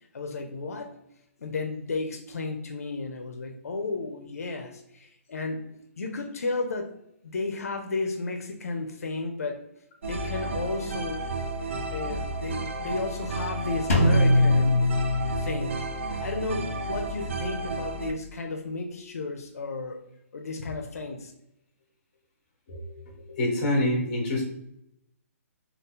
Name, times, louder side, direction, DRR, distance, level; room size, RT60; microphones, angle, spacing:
voice 1, 0.1-0.9 1.4-5.6 6.0-7.0 7.2-9.6 10.0-11.2 11.9-14.8 15.4-15.9 16.2-20.0 20.3-21.3, left 3 dB, 90° left, 3 dB, 0.5 m, -33 dB
sound 1, 10.0-18.1, right 2 dB, 55° right, 0.5 m, -32 dB
Drum, 13.9-15.8, left 1 dB, 65° left, 0.8 m, -21 dB
voice 2, 22.7-24.5, left 1 dB, 35° left, 0 dB, 1.0 m, -27 dB
2.7 x 2.3 x 3.6 m, 0.80 s
hypercardioid pair, 165°, 8 cm